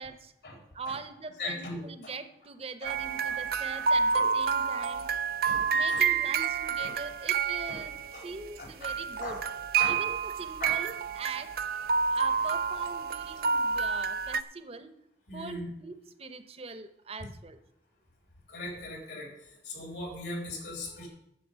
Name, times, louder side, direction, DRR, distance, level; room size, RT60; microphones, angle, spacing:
voice 1, 0.0-0.3 0.7-5.1 5.5-7.9 8.2-9.4 9.9-11.5 12.1-14.9 15.3-17.6, right 4 dB, 35° right, 10 dB, 0.9 m, -41 dB
voice 2, 1.4-2.1 2.8-2.9 3.3-3.4 3.7-3.8 4.1-4.3 4.6-4.7 5.4-6.0 6.3-6.4 6.8-7.0 7.7-7.8 8.1-8.3 8.6-8.9 9.2-9.5 9.8-10.0 10.6-10.8 15.3-15.7 18.5-19.3 19.6-21.1, left 2 dB, 75° left, 1 dB, 3.8 m, -39 dB
sound 1, 2.8-8.6 8.8-14.4, right 5 dB, 55° right, 0.5 m, -29 dB
9.7 x 7.0 x 8.2 m, 0.77 s
head